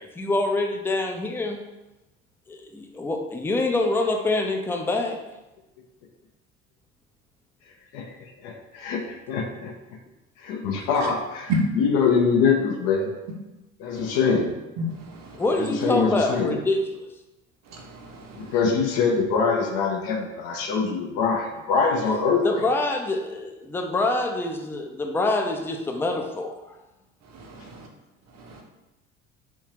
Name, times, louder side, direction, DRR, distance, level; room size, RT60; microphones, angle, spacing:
voice 1, 0.0-1.6 2.5-5.2 15.3-17.0 22.4-26.5, left 2 dB, 5° left, 3 dB, 0.4 m, -25 dB
voice 2, 8.4-9.7 10.4-13.1 13.8-14.5 15.5-16.6 18.3-22.6, left 5 dB, 65° left, 1 dB, 0.7 m, -24 dB
voice 3, 17.7-18.4 27.5-27.8, right 2 dB, 45° right, 1 dB, 0.9 m, -30 dB
3.5 x 2.7 x 3.0 m, 1.0 s
hypercardioid pair, 65°, 37 cm